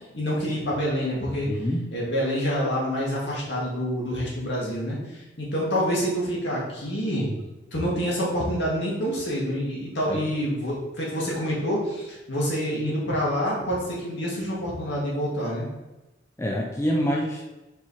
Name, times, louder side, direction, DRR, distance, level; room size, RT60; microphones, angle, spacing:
voice 1, 0.1-1.5 1.9-7.3 7.7-15.7, equal, 65° left, -5 dB, 2.0 m, -27 dB
voice 2, 1.5-2.0 10.1-10.2 16.4-17.4, equal, 15° left, 0 dB, 0.4 m, -26 dB
4.8 x 4.7 x 4.2 m, 1.0 s
head